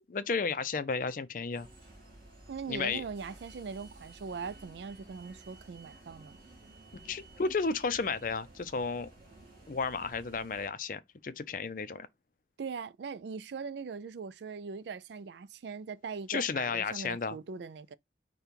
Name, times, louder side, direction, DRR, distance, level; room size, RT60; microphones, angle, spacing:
voice 1, 0.1-1.7 2.7-3.0 7.0-9.1 9.7-12.1 16.3-17.4, left 4 dB, 50° left, 0.5 m, -33 dB
sound 1, 1.5-10.7, right 2 dB, 55° right, 2.8 m, -54 dB
voice 2, 2.5-6.4 12.6-18.0, right 5 dB, 75° right, 0.4 m, -41 dB
5.1 x 2.3 x 4.4 m
head